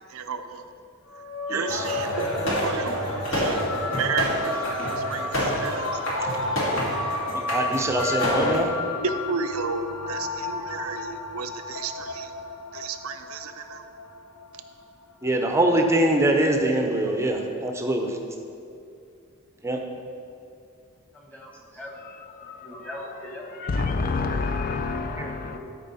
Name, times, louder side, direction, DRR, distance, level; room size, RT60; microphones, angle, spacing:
voice 1, 0.1-0.7 1.5-6.0 9.0-12.3 12.7-13.8, right 5 dB, 85° right, 7 dB, 0.5 m, -32 dB
sound 1, 1.1-15.8, left 3 dB, 85° left, 0.8 m, -34 dB
voice 2, 1.5-1.8 7.3-8.7 15.2-18.2 19.6-19.8 25.2-25.3, right 1 dB, 15° right, 3 dB, 0.7 m, -23 dB
sound 2, 1.7-8.6, equal, 65° left, 1.8 m, -28 dB
voice 3, 21.1-21.9 22.6-23.9 25.5-25.6, left 1 dB, 10° left, -2 dB, 1.4 m, -40 dB
voice 4, 22.0-22.9 23.5-25.6, left 3 dB, 40° left, 7 dB, 0.4 m, -29 dB
13.0 x 4.5 x 4.1 m, 2.5 s
head